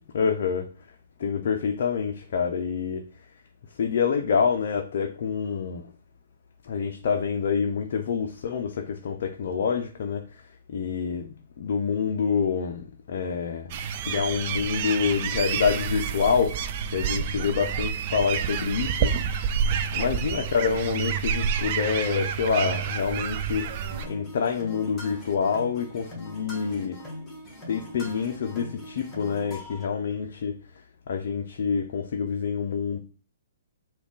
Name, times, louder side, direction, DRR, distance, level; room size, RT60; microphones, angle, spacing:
voice 1, 0.1-0.7 1.2-3.1 3.8-5.8 6.6-10.4 10.7-13.8 14.1-16.6 16.9-19.1 19.9-23.7 24.1-27.0 27.7-30.6 31.1-33.0, left 6 dB, 60° left, 0.4 m, -27 dB
sound 1, 13.7-24.0, right 7 dB, 45° right, 0.4 m, -28 dB
sound 2, 23.9-29.9, left 1 dB, 15° left, 1.4 m, -41 dB
3.5 x 2.3 x 3.8 m
hypercardioid pair, 125°, 0 cm